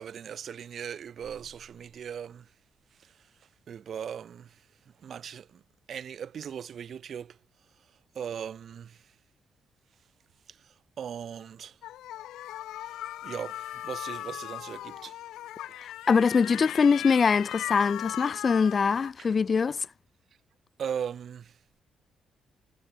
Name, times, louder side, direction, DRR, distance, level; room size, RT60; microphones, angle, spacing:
voice 1, 0.0-2.5 3.0-3.3 3.7-4.6 5.0-5.6 5.9-7.4 8.1-9.1 10.5-11.8 12.8-12.9 13.2-15.2 19.2-19.3 20.8-21.6, right 8 dB, 55° right, 1.4 m, -39 dB
sound 1, 11.8-19.1, left 14 dB, 85° left, 1.4 m, -38 dB
voice 2, 15.8-19.9, left 5 dB, 40° left, 0.6 m, -23 dB
cardioid pair, 90°, 0 cm